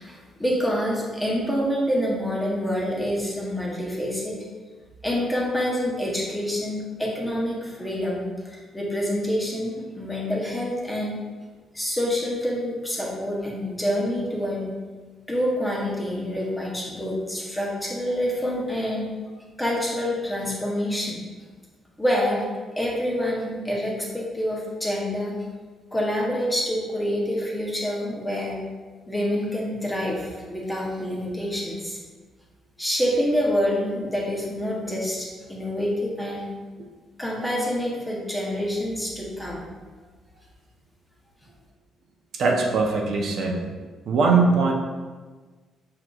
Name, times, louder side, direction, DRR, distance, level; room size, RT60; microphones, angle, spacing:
voice 1, 0.0-4.4 5.0-11.2 11.7-14.7 15.3-19.1 19.6-21.3 22.0-22.5 22.8-25.3 25.9-28.6 29.1-32.0 32.8-36.5 37.2-39.7, equal, 5° left, -3 dB, 0.7 m, -27 dB
voice 2, 42.4-43.6 44.1-44.7, right 4 dB, 50° right, 0 dB, 0.6 m, -20 dB
6.0 x 3.8 x 2.3 m, 1.4 s
cardioid pair, 175°, 0 cm